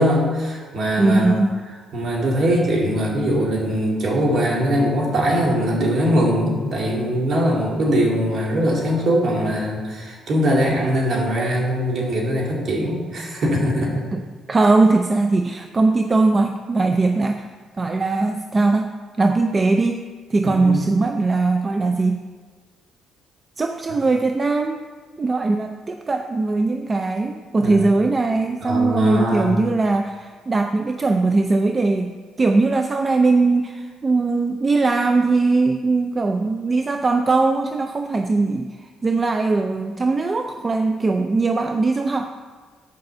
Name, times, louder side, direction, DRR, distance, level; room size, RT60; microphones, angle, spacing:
voice 1, 0.0-1.3 1.9-14.0 20.4-20.8 27.6-27.8 28.6-29.6, equal, 50° right, -2 dB, 2.3 m, -21 dB
voice 2, 1.0-1.6 14.1-14.2 14.5-17.5 17.8-20.0 20.3-22.3 23.6-24.9 25.2-42.3, right 3 dB, 25° right, 6 dB, 0.4 m, -20 dB
8.1 x 5.3 x 6.7 m, 1.5 s
cardioid pair, 130°, 0 cm